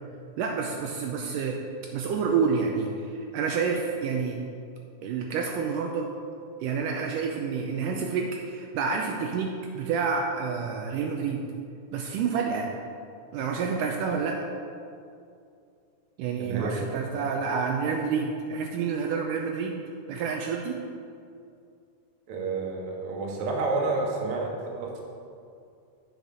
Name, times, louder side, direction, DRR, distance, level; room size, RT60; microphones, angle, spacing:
voice 1, 0.4-1.6 1.9-4.4 5.0-6.1 6.6-11.4 11.9-12.7 13.3-14.5 16.2-19.8 20.1-20.8, right 5 dB, 80° right, 1 dB, 2.1 m, -28 dB
voice 2, 16.4-16.7 22.3-25.0, right 3 dB, 55° right, -1 dB, 1.7 m, -30 dB
8.0 x 7.0 x 6.2 m, 2.4 s
omnidirectional pair, 4.1 m